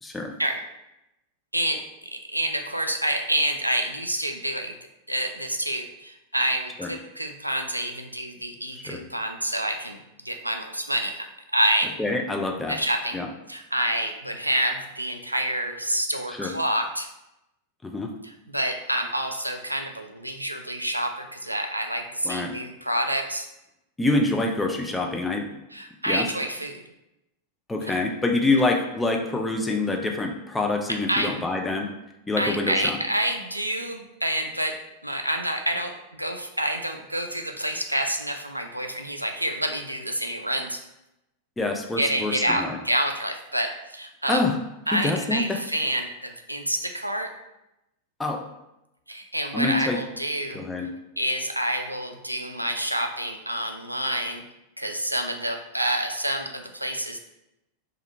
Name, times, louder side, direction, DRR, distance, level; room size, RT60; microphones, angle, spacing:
voice 1, 0.0-0.3 6.8-6.9 8.7-9.0 12.0-12.8 13.1-13.3 16.3-16.5 17.8-18.1 22.2-22.5 24.0-25.4 26.1-26.3 27.7-31.9 32.3-33.0 41.6-42.8 44.3-44.6 44.9-45.6 48.2-48.4 49.5-50.0 50.5-50.9, left 2 dB, 10° left, 2 dB, 0.4 m, -26 dB
voice 2, 2.1-4.7 5.1-10.0 10.2-11.3 11.5-11.9 12.7-13.2 13.5-17.1 18.5-23.5 25.7-26.8 27.9-28.0 31.1-31.3 32.4-34.8 35.0-40.8 42.0-44.4 44.9-47.3 49.1-50.6 51.2-54.4 54.8-57.2, right 1 dB, 85° right, 4 dB, 0.3 m, -28 dB
2.8 x 2.4 x 3.1 m, 0.90 s
figure-of-eight pair, 90°, 0 cm